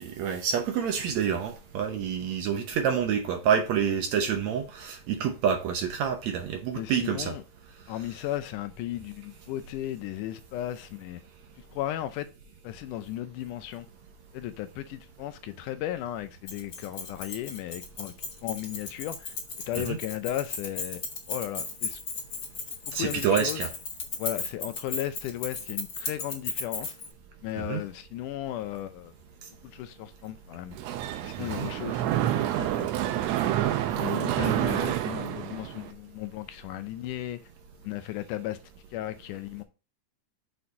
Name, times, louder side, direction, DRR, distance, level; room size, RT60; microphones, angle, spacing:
voice 1, 0.0-7.3 19.9-20.0 22.9-23.7 27.6-27.8 31.4-31.7, right 7 dB, 70° right, 1.8 m, -28 dB
voice 2, 6.7-7.4 7.9-11.2 11.6-12.3 12.6-13.9 14.3-18.1 18.4-22.0 22.9-23.7 24.2-27.0 27.4-29.1 29.6-30.8 31.2-32.9 33.4-33.6 33.9-37.4 37.8-38.6 38.9-39.6, left 13 dB, 80° left, 2.0 m, -35 dB
Keys jangling, 16.5-27.1, left 4 dB, 45° left, 1.8 m, -35 dB
Mechanisms, 30.7-35.9, right 12 dB, 90° right, 1.5 m, -28 dB
6.8 x 4.2 x 4.7 m
omnidirectional pair, 3.8 m